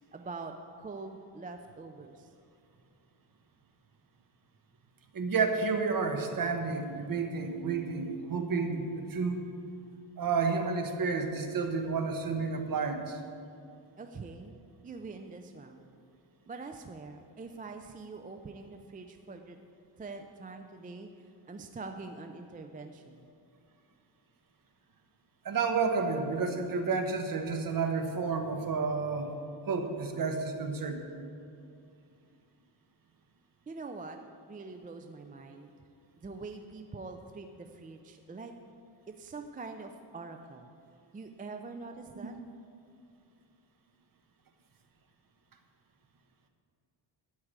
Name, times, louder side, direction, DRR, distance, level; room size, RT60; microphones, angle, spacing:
voice 1, 0.1-2.3 14.0-14.5 14.8-15.9 16.5-19.6 20.0-23.3 33.7-34.2 34.5-35.7 36.1-38.5 39.1-40.7 41.1-42.3, right 3 dB, 20° right, 6 dB, 0.4 m, -44 dB
voice 2, 5.1-9.4 10.2-13.2 25.4-29.3 29.7-31.0, right 4 dB, 45° right, 5 dB, 1.2 m, -31 dB
13.0 x 4.7 x 8.7 m, 2.4 s
cardioid pair, 135°, 48 cm